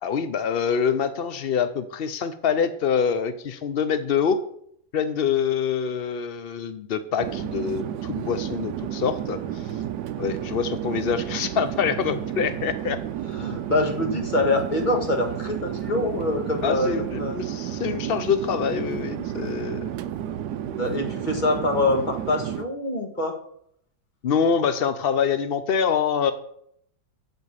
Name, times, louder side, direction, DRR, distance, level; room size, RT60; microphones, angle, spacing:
voice 1, 0.0-4.4 4.9-9.7 10.2-13.0 16.6-19.9 24.2-26.3, left 7 dB, 90° left, 11 dB, 0.5 m, -25 dB
Chatter / Fixed-wing aircraft airplane, 7.2-22.7, right 11 dB, 70° right, 1.1 m, -31 dB
voice 2, 13.3-16.9 17.2-17.3 20.6-23.4, left 2 dB, 25° left, 4 dB, 1.6 m, -25 dB
7.9 x 7.2 x 7.3 m, 0.69 s
omnidirectional pair, 1.9 m